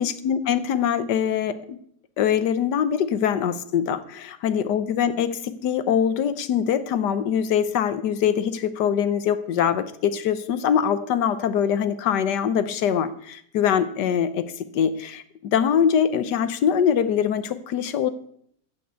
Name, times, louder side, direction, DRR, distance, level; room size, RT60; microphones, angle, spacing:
voice 1, 0.0-1.8 2.2-18.1, left 8 dB, 90° left, 13 dB, 1.5 m, -23 dB
14.5 x 5.3 x 8.1 m, 0.66 s
omnidirectional pair, 1.7 m